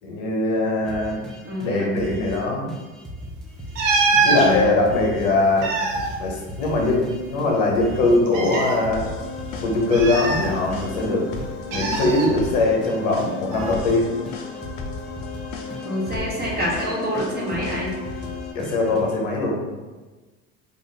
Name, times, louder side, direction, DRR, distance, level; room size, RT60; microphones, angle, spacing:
voice 1, 0.0-1.2 1.6-2.7 4.2-5.7 6.2-9.1 9.6-11.3 11.7-14.1 18.5-19.6, left 2 dB, 75° left, -1 dB, 0.9 m, -21 dB
sound 1, 0.8-2.4 2.7-5.3 5.6-5.7 5.9-8.2 8.5-11.1 11.4-14.0 14.2-16.9 17.1-19.2, equal, ahead, 0.3 m, -38 dB
voice 2, 1.4-1.9 4.3-4.6 15.8-18.0, equal, 25° right, -4 dB, 0.9 m, -27 dB
sound 2, 3.7-4.5 5.4-7.1 7.3-7.4 8.3-8.8 9.9-11.0 11.7-12.3 13.5-13.7, right 4 dB, 70° right, 0.8 m, -23 dB
sound 3, 8.9-18.5, left 5 dB, 55° left, 0.5 m, -34 dB
2.6 x 2.3 x 3.2 m, 1.2 s
hypercardioid pair, 85°, 40 cm